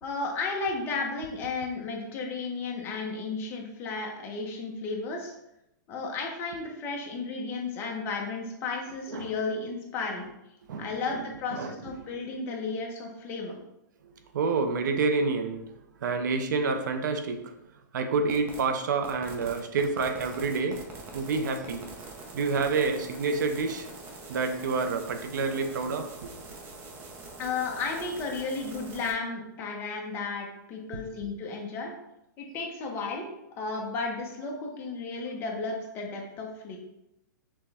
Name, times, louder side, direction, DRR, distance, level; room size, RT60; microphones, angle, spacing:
voice 1, 0.0-5.3 5.9-10.3 10.8-13.5 27.4-31.9 32.4-33.3 33.6-36.8, left 4 dB, 20° left, 0 dB, 0.7 m, -33 dB
voice 2, 10.6-11.2 11.5-11.8 14.0-15.7 16.0-17.6 17.9-20.8 21.1-21.9 22.3-23.9 24.3-26.1, right 4 dB, 70° right, 7 dB, 0.6 m, -28 dB
sound 1, 18.3-18.6 19.0-29.1, right 3 dB, 20° right, 0.6 m, -44 dB
6.0 x 2.2 x 3.4 m, 0.85 s
hypercardioid pair, 160°, 10 cm